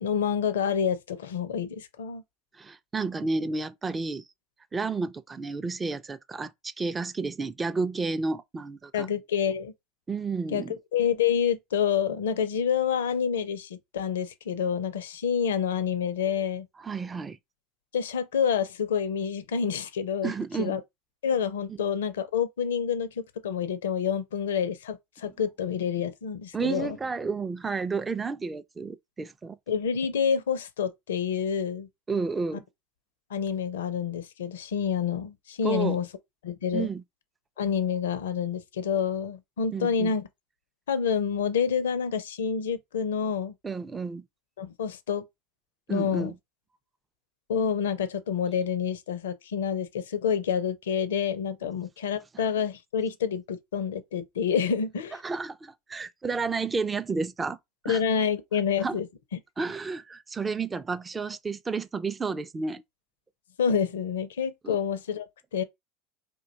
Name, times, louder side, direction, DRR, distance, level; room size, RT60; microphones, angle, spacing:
voice 1, 0.0-2.2 8.9-9.7 10.5-16.7 17.9-20.3 20.6-20.8 21.2-27.0 29.7-31.9 32.5-32.6 33.3-36.1 36.4-36.9 37.6-40.3 40.9-43.5 44.6-45.2 45.9-46.3 47.5-55.2 57.8-59.4 63.6-65.6, left 7 dB, 80° left, 0.5 m, -28 dB
voice 2, 2.6-4.3 4.7-9.1 10.1-10.8 16.8-17.4 20.2-20.8 21.7-21.8 25.2-25.3 26.5-29.6 32.1-32.6 35.6-36.0 36.7-37.0 39.7-40.2 43.6-44.2 45.9-46.3 55.2-57.6 57.8-58.0 58.8-59.0 59.6-62.8 64.6-64.8, right 4 dB, 20° right, 0.4 m, -31 dB
2.5 x 2.2 x 3.9 m
hypercardioid pair, 80°, 0 cm